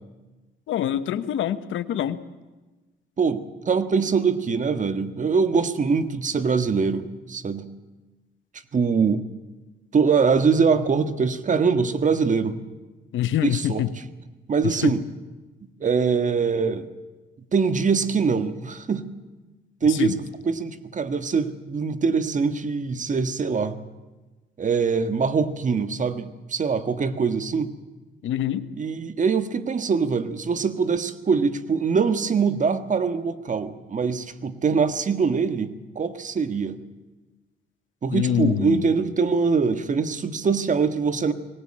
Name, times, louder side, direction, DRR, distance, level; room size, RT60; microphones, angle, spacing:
voice 1, 0.7-2.2 13.1-13.9 14.8-14.9 19.9-20.2 28.2-28.6 38.1-38.9, left 11 dB, 75° left, 12 dB, 1.1 m, -25 dB
voice 2, 3.2-7.7 8.7-9.2 9.9-12.6 13.4-13.8 14.5-15.0 15.8-16.9 17.5-19.1 19.8-20.1 20.4-23.8 24.6-27.7 28.8-36.8 38.0-41.3, right 5 dB, 40° right, 11 dB, 1.6 m, -23 dB
20.5 x 18.0 x 8.7 m, 1.2 s
cardioid pair, 90°, 20 cm